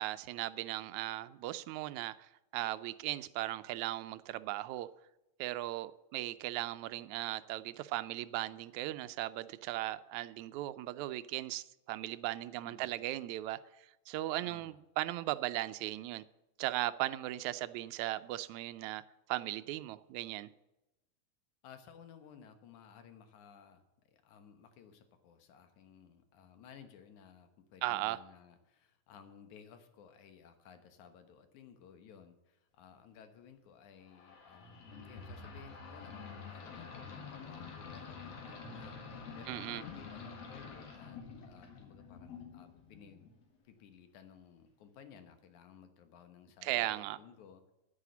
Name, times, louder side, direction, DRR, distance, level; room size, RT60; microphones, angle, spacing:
voice 1, 0.0-2.2 2.5-4.9 5.4-16.2 16.6-19.0 19.3-20.5 27.8-28.2 39.5-39.8 46.6-47.2, right 16 dB, 85° right, 14 dB, 1.9 m, -37 dB
voice 2, 12.6-13.1 14.4-14.8 21.6-43.3 43.6-47.7, left 7 dB, 85° left, 8 dB, 2.6 m, -57 dB
sound 1, 34.1-43.4, left 5 dB, 60° left, 2.7 m, -48 dB
9.9 x 9.6 x 7.0 m, 0.94 s
omnidirectional pair, 3.3 m